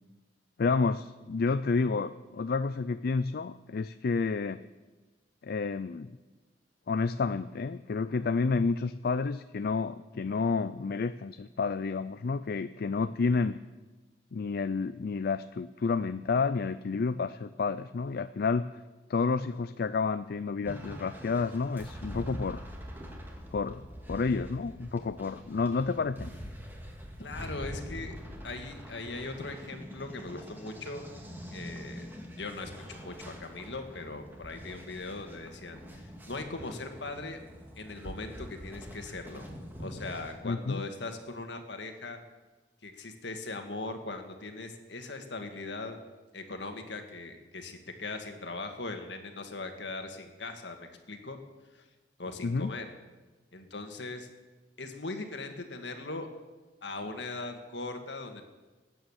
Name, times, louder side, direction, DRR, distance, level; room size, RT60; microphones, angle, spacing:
voice 1, 0.6-4.6 5.4-6.2 6.9-13.6 14.3-18.7 19.1-22.6 23.5-26.3 40.4-40.8 52.4-52.7, left 4 dB, 60° left, 12 dB, 0.4 m, -30 dB
sound 1, 20.6-40.3, equal, 10° right, 2.2 m, -44 dB
voice 2, 27.2-28.1 28.4-31.1 31.5-32.1 32.3-37.4 37.8-39.5 39.8-42.2 42.8-46.0 46.3-51.4 51.7-51.8 52.2-52.9 53.5-54.3 54.8-56.3 56.8-58.4, left 3 dB, 75° left, 5 dB, 1.8 m, -40 dB
19.0 x 9.2 x 7.2 m, 1.2 s
head